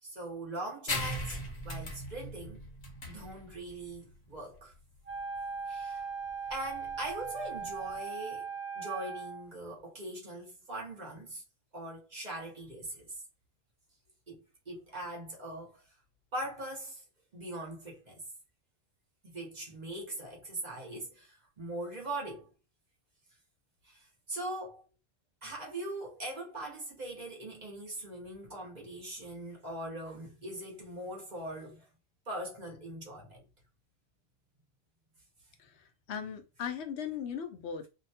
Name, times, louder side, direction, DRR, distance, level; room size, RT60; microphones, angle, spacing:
voice 1, 0.0-2.6 3.1-4.7 5.7-6.1 6.5-8.5 8.7-11.4 11.7-13.2 14.3-15.9 16.3-17.0 17.3-18.2 19.2-22.5 23.8-24.8 25.4-31.9 32.3-33.5, right 1 dB, 45° right, 1.0 m, -41 dB
sound 1, 0.9-8.0, left 1 dB, 50° left, 0.9 m, -40 dB
Wind instrument woodwind instrument, 5.0-9.5, right 5 dB, 20° right, 0.4 m, -39 dB
voice 2, 35.6-37.8, left 7 dB, 75° left, 0.8 m, -38 dB
2.7 x 2.2 x 2.7 m
omnidirectional pair, 1.1 m